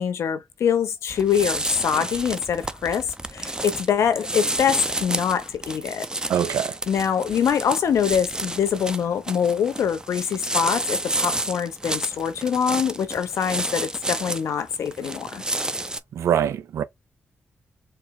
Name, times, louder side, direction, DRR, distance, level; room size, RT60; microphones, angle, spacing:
voice 1, 0.0-6.1 6.9-15.4, left 8 dB, 80° left, 0.7 m, -24 dB
sound 1, 1.1-16.0, right 1 dB, 15° right, 0.6 m, -30 dB
voice 2, 6.3-6.8 16.1-16.8, right 9 dB, 85° right, 0.5 m, -23 dB
4.3 x 2.1 x 3.7 m
cardioid pair, 50°, 5 cm